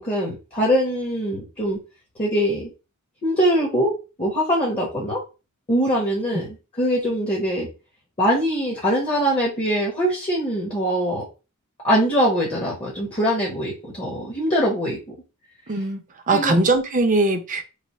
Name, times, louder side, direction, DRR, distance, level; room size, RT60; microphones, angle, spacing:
voice 1, 0.0-1.8 2.2-2.7 3.2-3.9 4.2-5.2 5.7-7.7 8.2-11.2 11.8-15.1 16.3-16.5, equal, 25° left, -3 dB, 1.0 m, -22 dB
voice 2, 15.7-16.0 16.3-17.6, right 2 dB, 35° right, 5 dB, 0.6 m, -20 dB
3.2 x 2.1 x 4.1 m, 0.30 s
head